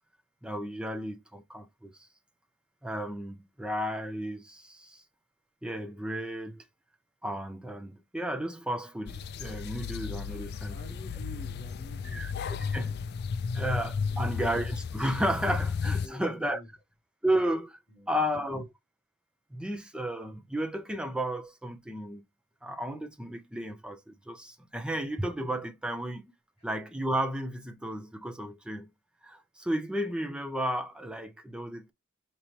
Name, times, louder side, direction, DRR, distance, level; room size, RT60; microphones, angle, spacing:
voice 1, 0.4-2.0 2.8-5.0 5.6-6.6 7.2-10.8 12.0-12.9 13.5-16.6 17.2-17.8 18.1-18.7 19.5-22.2 22.6-26.2 26.6-28.9 29.2-31.9, right 1 dB, 5° right, 0.5 m, -33 dB
sound 1, 9.1-16.1, left 5 dB, 50° left, 0.3 m, -33 dB
voice 2, 10.7-13.1 14.1-14.4 16.0-16.7 17.9-18.3 18.5-18.6 26.6-26.7, equal, 30° left, 1.4 m, -49 dB
5.5 x 2.9 x 3.0 m
head